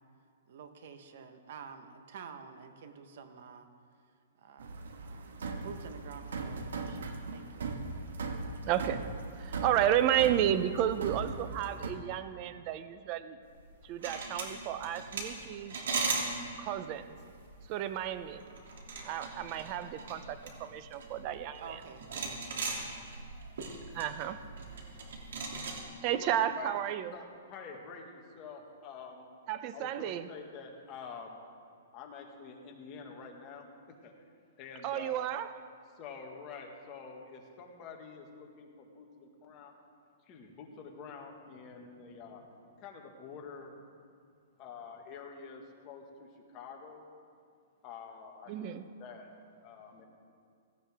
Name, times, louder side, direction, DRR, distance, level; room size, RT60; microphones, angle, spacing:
voice 1, 0.5-3.7 4.4-7.7 21.6-22.7, right 6 dB, 55° right, 7 dB, 1.4 m, -49 dB
sound 1, 4.6-11.9, right 4 dB, 90° right, 1.6 m, -39 dB
voice 2, 8.6-9.0 9.4-13.4 13.8-15.8 16.6-17.2 17.7-18.4 19.0-21.8 23.9-24.4 26.0-27.1 29.5-30.3 34.8-35.7 48.5-48.9, right 11 dB, 30° right, 12 dB, 0.7 m, -32 dB
sound 2, 13.6-25.8, right 4 dB, 70° right, 2.9 m, -39 dB
voice 3, 24.7-26.8 27.1-29.3 29.7-31.4 31.9-33.7 34.0-34.2 34.6-35.3 35.9-39.7 40.3-42.4 42.8-43.7 44.6-47.1 47.8-48.7 49.0-49.3 49.6-50.0, left 5 dB, 25° left, 1 dB, 1.8 m, -48 dB
17.0 x 17.0 x 3.7 m, 2.3 s
hypercardioid pair, 170°, 0 cm